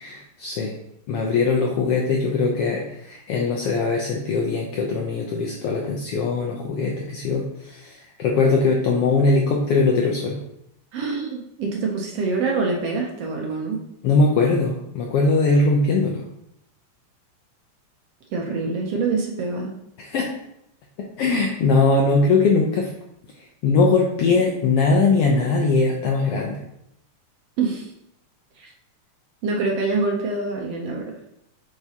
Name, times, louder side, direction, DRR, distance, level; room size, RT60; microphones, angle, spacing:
voice 1, 0.0-0.7 1.1-10.4 14.0-16.2 20.0-20.3 21.2-22.9 23.6-26.6, left 3 dB, 75° left, 0 dB, 1.4 m, -21 dB
voice 2, 10.9-13.8 18.3-19.7 27.6-27.9 28.6-28.7 29.4-31.1, right 4 dB, 70° right, 0 dB, 1.6 m, -25 dB
8.0 x 4.8 x 2.8 m, 0.79 s
omnidirectional pair, 3.4 m